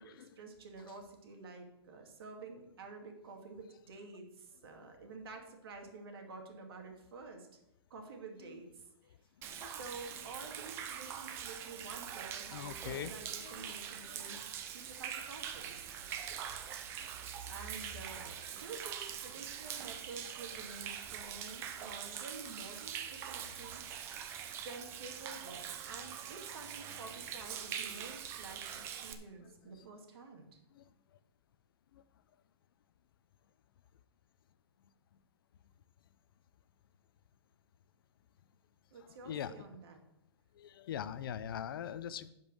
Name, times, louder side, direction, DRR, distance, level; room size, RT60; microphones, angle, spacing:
voice 1, 0.0-7.5 7.9-9.1 9.5-15.9 16.9-23.9 24.6-30.6 38.9-40.0, right 3 dB, 60° right, 3 dB, 2.3 m, -50 dB
voice 2, 9.4-9.8 12.5-14.5 16.0-16.2 17.3-17.4 29.4-29.9 30.7-30.9 31.9-32.0 39.2-39.6 40.5-42.3, left 9 dB, 55° left, 15 dB, 0.6 m, -44 dB
Human voice / Rain / Stream, 9.4-29.1, right 8 dB, 15° right, 0.6 m, -43 dB
10.5 x 5.4 x 6.2 m, 0.86 s
hypercardioid pair, 165°, 14 cm